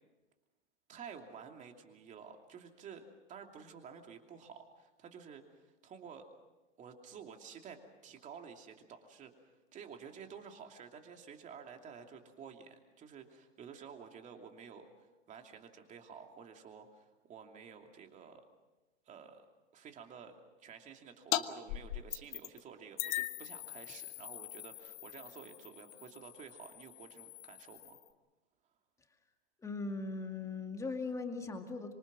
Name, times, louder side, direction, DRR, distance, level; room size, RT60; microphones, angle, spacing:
voice 1, 0.9-6.3 6.8-18.4 19.1-19.5 19.7-28.0, right 6 dB, 20° right, 4 dB, 2.7 m, -52 dB
sound 1, 21.3-21.4 21.7-22.6 23.0-28.1, left 16 dB, 45° left, 1.3 m, -41 dB
voice 2, 29.6-31.9, left 3 dB, 10° left, 4 dB, 2.3 m, -39 dB
26.0 x 24.5 x 6.2 m, 1.1 s
hypercardioid pair, 140°, 35 cm